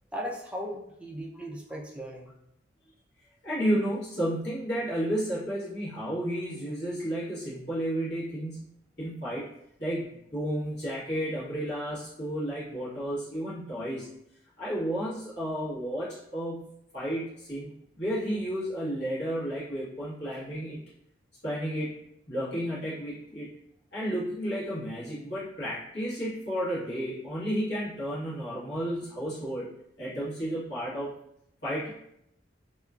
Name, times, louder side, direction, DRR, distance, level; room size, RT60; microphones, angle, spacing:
voice 1, 0.1-2.3, equal, 5° right, -2 dB, 0.3 m, -37 dB
voice 2, 3.4-8.7 9.0-9.5 9.8-14.1 14.6-17.7 17.9-20.8 21.4-22.0 22.3-23.5 23.9-29.7 30.0-31.1 31.6-32.1, equal, 65° left, -10 dB, 1.3 m, -32 dB
2.8 x 2.2 x 2.4 m, 0.78 s
head